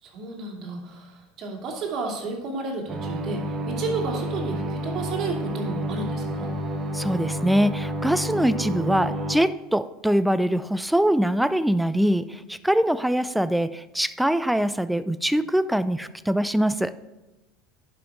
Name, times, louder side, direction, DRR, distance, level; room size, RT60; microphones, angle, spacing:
voice 1, 0.0-6.5, right 3 dB, 45° right, 0 dB, 2.6 m, -32 dB
sound 1, 2.9-9.4, equal, 30° right, 1.3 m, -30 dB
voice 2, 6.9-17.0, equal, 5° right, 15 dB, 0.4 m, -23 dB
11.0 x 5.8 x 4.8 m, 1.0 s
hypercardioid pair, 80°, 0 cm